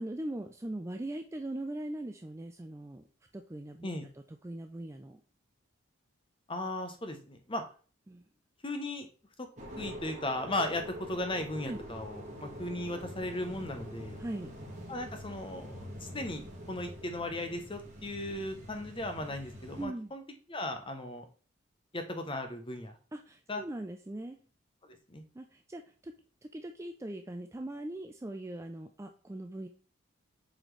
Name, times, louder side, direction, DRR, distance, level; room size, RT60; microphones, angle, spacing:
voice 1, 0.0-3.1 3.3-3.9 4.3-5.2 8.1-8.2 11.6-11.8 14.2-14.5 19.8-20.1 23.1-24.4 25.3-26.1 26.5-29.7, right 1 dB, 15° right, 5 dB, 0.3 m, -40 dB
voice 2, 6.5-7.6 8.6-9.1 9.4-9.5 9.8-14.2 14.9-16.4 16.7-20.2 20.5-21.2 21.9-23.0 23.5-23.6 24.8-25.2, left 1 dB, 25° left, 6 dB, 0.8 m, -37 dB
sound 1, 9.6-19.9, equal, 35° right, 1.5 m, -45 dB
7.8 x 4.2 x 3.2 m, 0.40 s
head